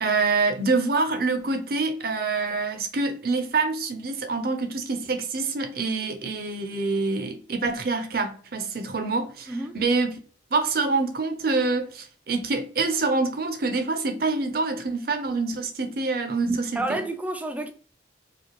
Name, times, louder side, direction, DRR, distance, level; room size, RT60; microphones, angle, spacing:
voice 1, 0.0-10.1 10.5-17.0, right 3 dB, 55° right, 0.6 m, -26 dB
voice 2, 9.5-9.8 16.8-17.7, right 2 dB, 10° right, 0.4 m, -29 dB
4.9 x 2.3 x 3.0 m
head